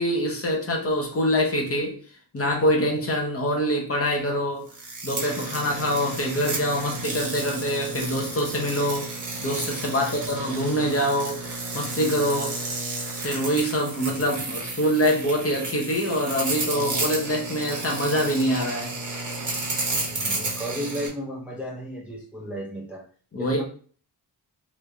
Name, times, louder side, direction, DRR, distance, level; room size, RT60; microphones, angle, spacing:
voice 1, 0.0-2.0 2.3-4.7 5.0-11.4 11.7-12.6 13.2-18.9 23.3-23.6, equal, 35° left, 0.8 m, -25 dB
sound 1, 4.7-21.1, right 2 dB, 45° right, 1.0 m, -32 dB
voice 2, 9.9-10.3 14.1-14.3 20.1-23.1 23.3-23.6, equal, 5° right, 0.5 m, -35 dB
3.2 x 2.5 x 3.2 m
wide cardioid pair, 170°, 41 cm